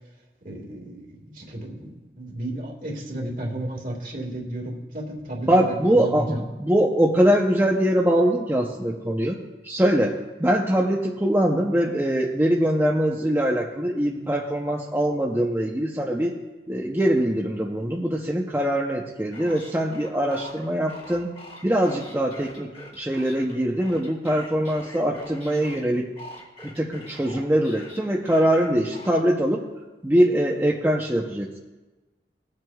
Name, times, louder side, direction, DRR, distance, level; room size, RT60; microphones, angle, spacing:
voice 1, 0.4-6.5, right 1 dB, 50° right, 0 dB, 1.8 m, -33 dB
voice 2, 5.5-9.4 9.6-16.4 16.7-21.3 21.6-26.1 26.8-29.6 30.0-31.6, right 1 dB, 10° right, -2 dB, 0.6 m, -22 dB
sound 1, 19.3-25.8 26.2-29.1, left 1 dB, 35° left, 2.1 m, -43 dB
21.0 x 7.7 x 2.3 m, 1.2 s
head